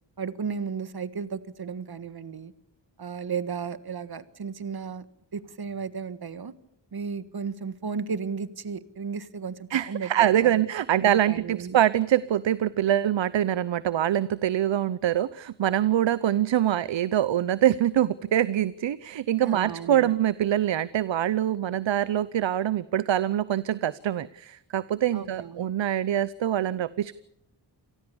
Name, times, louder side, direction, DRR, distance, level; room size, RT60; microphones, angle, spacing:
voice 1, 0.2-2.5 3.0-5.1 5.3-6.5 6.9-10.6 11.0-11.8 19.4-20.1 25.1-25.7, right 6 dB, 55° right, 14 dB, 1.6 m, -34 dB
voice 2, 9.7-27.1, right 11 dB, 75° right, 18 dB, 0.8 m, -24 dB
27.5 x 19.0 x 7.1 m, 0.78 s
cardioid pair, 75°, 45 cm